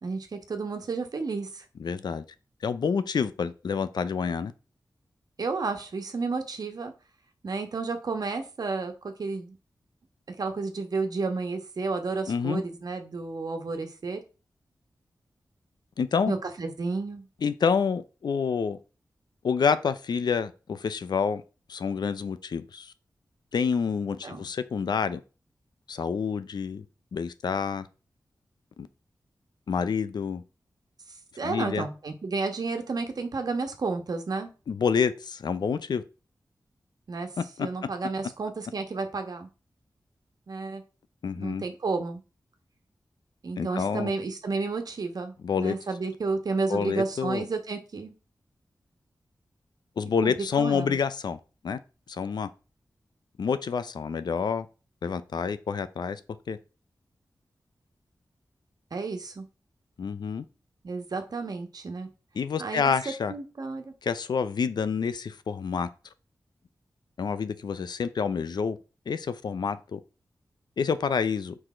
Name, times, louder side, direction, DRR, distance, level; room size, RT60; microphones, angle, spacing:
voice 1, 0.0-1.6 5.4-6.9 7.4-9.6 10.3-14.2 16.3-17.3 24.2-24.5 31.4-34.5 37.1-37.3 37.6-39.5 40.5-40.8 41.4-42.2 43.4-48.2 50.2-51.0 58.9-59.4 60.8-62.1 62.6-62.9 63.3-63.9, right 4 dB, 65° right, 1.3 m, -31 dB
voice 2, 1.8-2.2 2.6-4.5 12.3-12.6 16.0-16.3 17.4-18.8 19.4-21.4 21.7-22.9 23.5-25.2 25.9-26.8 27.1-27.9 28.8-28.9 29.7-30.4 31.4-31.9 34.7-36.0 37.6-37.7 41.2-41.6 43.6-44.1 45.4-45.7 46.7-47.5 50.0-51.4 51.6-51.8 52.1-52.5 53.4-54.7 55.0-56.2 56.5-56.6 60.0-60.4 62.3-63.3 64.0-65.9 67.2-68.8 69.1-70.0 70.8-71.6, left 6 dB, 85° left, 0.6 m, -28 dB
6.2 x 4.9 x 4.4 m
wide cardioid pair, 95°, 7 cm